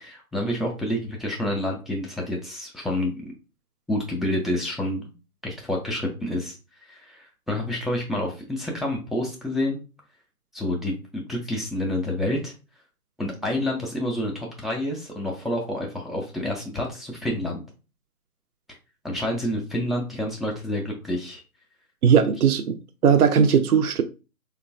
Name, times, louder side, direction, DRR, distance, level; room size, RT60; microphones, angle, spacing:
voice 1, 0.0-3.3 3.9-5.0 5.4-6.6 6.8-9.8 10.5-12.5 13.2-17.6 19.0-21.4, left 1 dB, ahead, 0.4 m, -28 dB
voice 2, 22.0-22.8 23.0-24.0, right 7 dB, 75° right, 0.5 m, -18 dB
4.5 x 2.2 x 2.4 m
hypercardioid pair, 175°, 45 cm